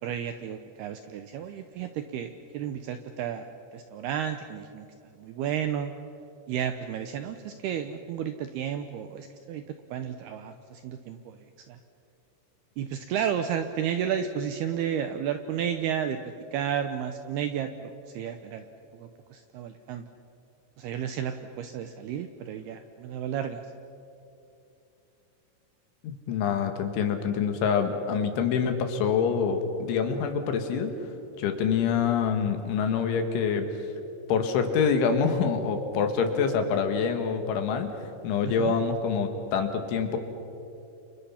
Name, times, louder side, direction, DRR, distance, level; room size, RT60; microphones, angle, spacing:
voice 1, 0.0-3.5 3.7-4.9 5.2-5.9 6.5-11.8 12.8-18.6 18.9-20.0 20.8-23.6 38.4-38.7, right 9 dB, 80° right, 8 dB, 2.4 m, -32 dB
voice 2, 26.0-30.9 31.4-33.7 34.3-37.9 38.2-40.2, left 6 dB, 75° left, 6 dB, 4.2 m, -26 dB
29.0 x 29.0 x 5.8 m, 2.8 s
omnidirectional pair, 5.5 m